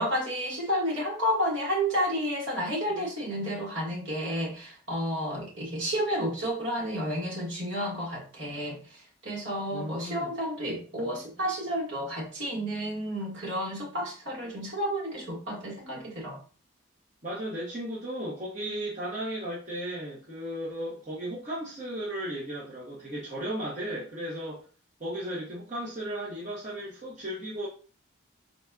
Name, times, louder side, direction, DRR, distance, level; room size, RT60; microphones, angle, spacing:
voice 1, 0.0-16.4, equal, 65° right, -4 dB, 1.8 m, -31 dB
voice 2, 9.7-10.3 17.2-24.6 25.0-27.7, right 1 dB, 35° right, -7 dB, 1.1 m, -35 dB
4.1 x 4.1 x 2.4 m, 0.38 s
head